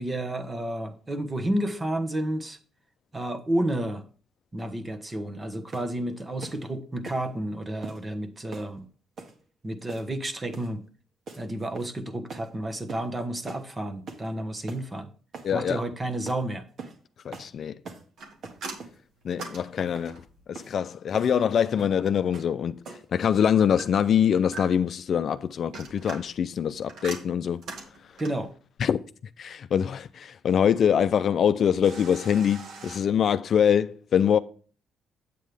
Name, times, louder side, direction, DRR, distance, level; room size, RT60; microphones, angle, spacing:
voice 1, 0.0-2.6 3.1-4.0 4.5-8.8 9.6-10.8 11.4-15.1 15.5-16.7 28.2-28.5, right 1 dB, 25° right, 1.3 m, -31 dB
sound 1, 5.7-6.0 6.4-6.6 7.0-7.3 7.8-8.0 8.5-8.7 9.2-9.4 9.9-10.2 10.5-10.7 11.3-11.4 11.7-12.0 12.3-12.5 12.9-13.1 13.5-13.7 14.1-14.3 14.7-14.8 15.3-15.5 16.3-16.4 16.8-17.0 17.3-17.5 17.8-18.1 18.4-19.0 19.4-19.6 19.9-20.1 20.5-20.7 21.1-21.4 21.8-22.0 22.3-22.5 22.8-23.1, right 3 dB, 60° right, 1.8 m, -42 dB
voice 2, 15.4-15.8 17.2-17.8 19.2-27.6 28.8-29.0 29.4-34.4, left 8 dB, 60° left, 0.5 m, -24 dB
sound 2, 18.2-20.4 23.8-25.0 25.5-28.5 31.8-33.0, right 3 dB, 75° right, 2.0 m, -41 dB
8.4 x 7.5 x 3.4 m
cardioid pair, 90°, 0 cm